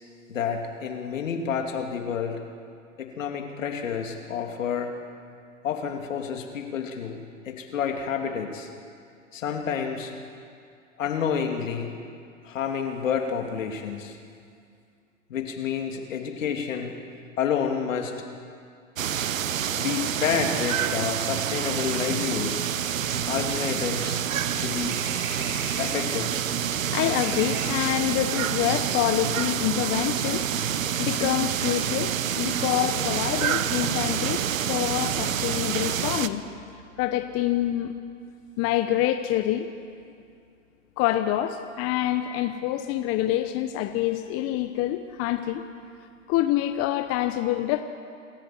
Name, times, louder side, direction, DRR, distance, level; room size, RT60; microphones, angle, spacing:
voice 1, 0.3-2.4 3.0-4.9 5.6-7.2 7.4-8.7 9.3-10.1 11.0-11.9 12.4-14.2 15.3-17.0 17.4-18.1 19.8-22.6 23.3-24.2 24.5-25.0 25.8-26.3, left 7 dB, 75° left, 3 dB, 2.9 m, -29 dB
sound 1, 19.0-36.3, right 9 dB, 80° right, 1.0 m, -27 dB
sound 2, 24.5-29.0, right 3 dB, 25° right, 4.8 m, -41 dB
voice 2, 25.3-25.8 26.6-36.6 37.0-37.9 38.6-39.7 41.0-45.6 46.3-47.8, left 13 dB, 35° left, 8 dB, 1.1 m, -27 dB
27.0 x 13.5 x 7.8 m, 2.3 s
hypercardioid pair, 110°, 39 cm